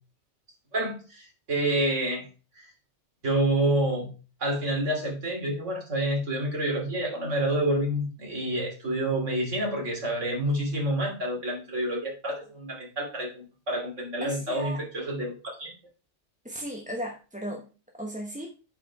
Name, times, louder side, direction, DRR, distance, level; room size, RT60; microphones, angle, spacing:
voice 1, 0.7-2.2 2.6-2.7 3.2-4.1 4.4-15.7, right 1 dB, 90° right, 0 dB, 3.1 m, -28 dB
voice 2, 14.2-14.8 16.4-17.7 18.0-18.5, equal, 5° right, 0 dB, 1.0 m, -35 dB
7.8 x 5.1 x 4.7 m, 0.35 s
omnidirectional pair, 1.2 m